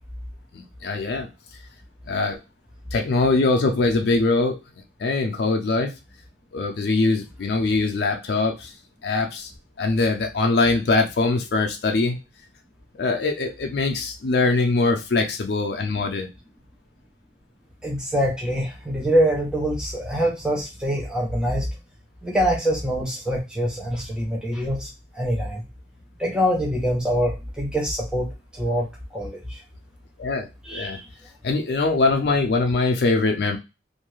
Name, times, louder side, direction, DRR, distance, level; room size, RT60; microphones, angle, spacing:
voice 1, 0.5-1.3 2.1-2.4 2.9-4.6 5.0-5.9 6.5-8.7 9.0-9.5 9.8-12.2 12.9-16.3 30.2-31.0 31.4-33.6, left 3 dB, 65° left, 3 dB, 0.4 m, -22 dB
voice 2, 17.8-21.7 22.2-25.6 26.2-28.9 29.1-29.6 30.6-31.0, equal, 5° right, -2 dB, 0.4 m, -24 dB
2.6 x 2.3 x 3.0 m, 0.26 s
head